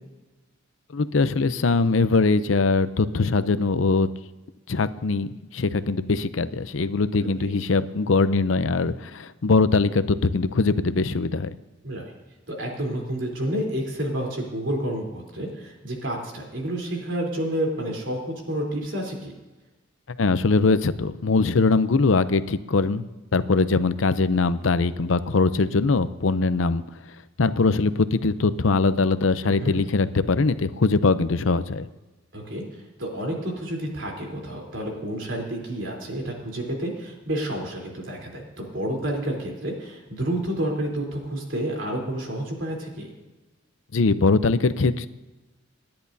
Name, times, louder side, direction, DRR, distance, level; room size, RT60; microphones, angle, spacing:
voice 1, 0.9-4.1 4.7-11.5 20.2-23.0 23.3-26.8 27.4-31.8 43.9-45.1, left 3 dB, 80° left, 13 dB, 0.7 m, -22 dB
voice 2, 12.5-19.3 29.4-29.8 32.3-43.1, right 1 dB, 70° right, 0 dB, 3.7 m, -30 dB
28.5 x 10.5 x 2.8 m, 1.1 s
head